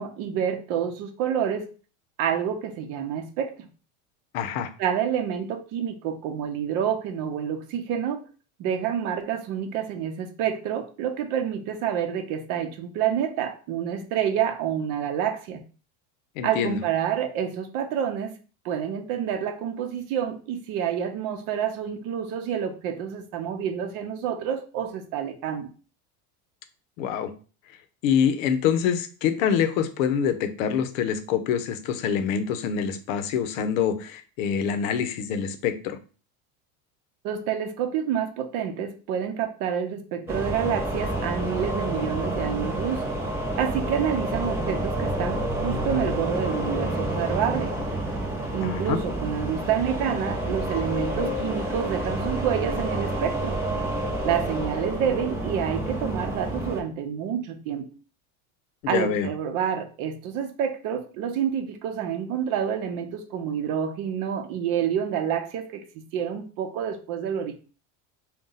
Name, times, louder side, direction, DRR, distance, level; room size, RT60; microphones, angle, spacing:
voice 1, 0.0-1.7 2.2-3.7 4.8-8.2 8.6-15.6 16.4-18.4 18.6-25.7 37.2-43.1 43.6-47.7 48.5-53.6 54.2-57.9 58.9-67.6, right 8 dB, 55° right, 6 dB, 0.7 m, -28 dB
voice 2, 4.3-4.7 16.4-16.8 27.0-27.3 28.0-36.0 48.6-49.0 58.8-59.3, left 8 dB, 85° left, 10 dB, 0.7 m, -25 dB
sound 1, 40.3-56.8, right 1 dB, 5° right, 0.7 m, -29 dB
3.9 x 2.3 x 3.8 m, 0.37 s
supercardioid pair, 145°, 39 cm